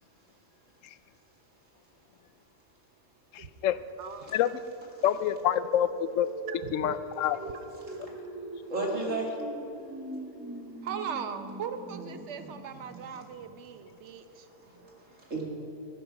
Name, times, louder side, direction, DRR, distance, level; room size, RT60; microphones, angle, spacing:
voice 1, 3.3-3.8 4.3-4.5 5.0-6.3 6.7-7.4, left 11 dB, 90° left, 14 dB, 1.0 m, -27 dB
voice 2, 4.0-4.3 6.5-6.7 10.8-14.5, right 7 dB, 65° right, 9 dB, 1.1 m, -39 dB
sound 1, 5.1-14.0, right 1 dB, 10° right, 0.9 m, -42 dB
voice 3, 8.6-9.3 14.2-15.4, right 2 dB, 85° right, -2 dB, 2.7 m, -35 dB
16.0 x 9.2 x 5.9 m, 2.5 s
omnidirectional pair, 1.3 m